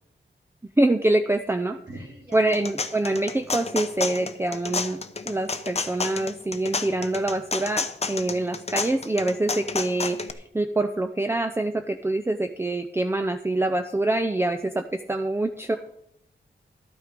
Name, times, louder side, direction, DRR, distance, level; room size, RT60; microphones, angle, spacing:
voice 1, 0.8-1.8 2.3-5.0 5.3-15.8, right 2 dB, 10° right, 8 dB, 0.5 m, -25 dB
voice 2, 1.9-2.5 15.7-15.8, right 1 dB, 60° right, -2 dB, 4.5 m, -43 dB
sound 1, 2.3-10.3, left 4 dB, 35° left, 0.8 m, -30 dB
12.5 x 8.9 x 5.1 m, 0.75 s
wide cardioid pair, 100°, 20 cm